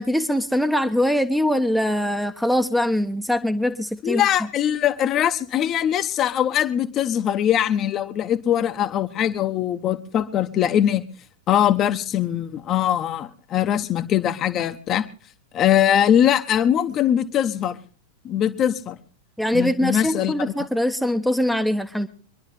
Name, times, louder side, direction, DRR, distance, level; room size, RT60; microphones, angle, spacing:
voice 1, 0.0-4.2 19.4-22.1, left 1 dB, ahead, 8 dB, 1.1 m, -22 dB
voice 2, 4.0-11.1 11.5-15.1 15.5-17.8 18.2-19.0 19.5-20.5, left 10 dB, 30° left, 7 dB, 1.2 m, -21 dB
25.5 x 11.5 x 3.5 m, 0.37 s
figure-of-eight pair, 90°, 0 cm